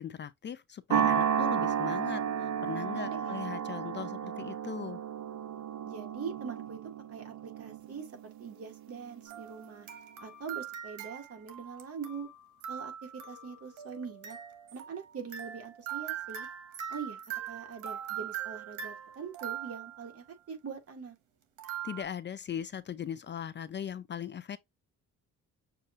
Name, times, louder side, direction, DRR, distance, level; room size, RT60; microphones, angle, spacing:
voice 1, 0.0-5.0 21.8-24.6, left 8 dB, 35° left, 0.5 m, -39 dB
sound 1, 0.9-9.4, right 8 dB, 70° right, 1.0 m, -33 dB
voice 2, 2.9-3.4 5.8-6.8 7.1-8.1 8.4-9.9 10.2-12.3 12.7-14.4 14.7-16.5 16.9-17.2 17.5-21.2, right 6 dB, 50° right, 2.0 m, -43 dB
sound 2, 9.3-20.1 21.6-22.0, right 9 dB, 85° right, 1.2 m, -42 dB
6.8 x 2.7 x 2.5 m
cardioid pair, 90°, 30 cm